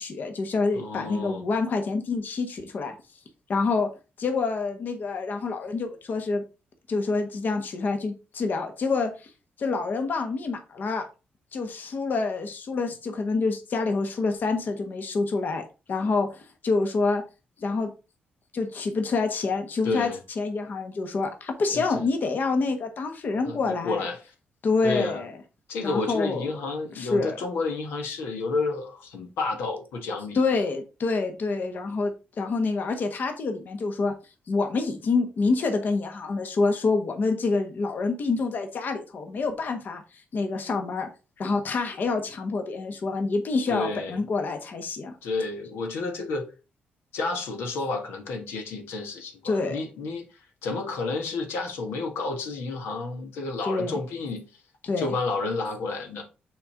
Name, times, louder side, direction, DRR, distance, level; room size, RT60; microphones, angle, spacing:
voice 1, 0.0-2.9 3.5-3.9 4.2-6.4 6.9-9.3 9.6-11.1 11.5-17.2 17.6-17.9 18.5-20.1 20.4-24.0 24.6-25.3 25.8-26.6 26.9-27.4 30.3-34.1 34.5-41.1 41.4-45.1 49.4-49.8 53.7-54.0 54.8-55.1, left 3 dB, 55° left, 1.2 m, -27 dB
voice 2, 0.7-1.4 19.8-20.2 21.7-22.1 23.4-24.2 24.8-25.2 25.7-30.4 43.7-44.1 45.2-46.4 47.1-50.2 50.6-54.4 55.0-56.2, left 3 dB, 90° left, 1.4 m, -30 dB
5.8 x 3.9 x 4.8 m
cardioid pair, 75°, 4 cm